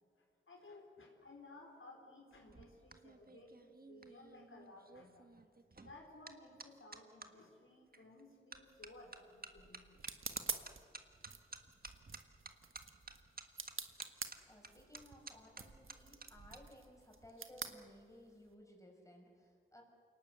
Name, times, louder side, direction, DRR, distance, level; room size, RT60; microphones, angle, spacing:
voice 1, 0.2-5.3 5.8-10.0, left 2 dB, 80° left, 0 dB, 4.3 m, -58 dB
sound 1, 2.3-7.3 7.9-8.2 8.5-16.6 16.9-17.3, right 3 dB, 45° right, 1.6 m, -54 dB
sound 2, 8.7-18.5, right 5 dB, 80° right, 1.5 m, -48 dB
voice 2, 14.5-19.8, left 1 dB, 15° left, 0 dB, 6.0 m, -59 dB
28.5 x 19.0 x 8.2 m, 2.3 s
wide cardioid pair, 85°, 21 cm